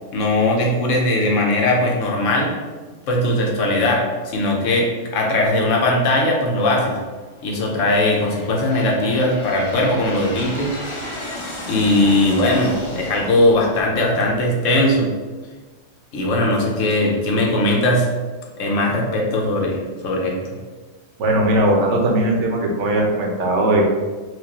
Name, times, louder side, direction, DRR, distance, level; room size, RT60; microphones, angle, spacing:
voice 1, 0.1-2.5 3.1-7.0 7.4-10.7 11.7-15.1 16.1-18.1 18.6-20.3, left 1 dB, 80° left, -1 dB, 1.1 m, -19 dB
Aircraft, 7.2-14.7, left 1 dB, 50° left, 0.3 m, -34 dB
voice 2, 21.2-23.9, right 1 dB, 75° right, 0 dB, 1.0 m, -18 dB
4.7 x 2.1 x 2.9 m, 1.4 s
omnidirectional pair, 1.3 m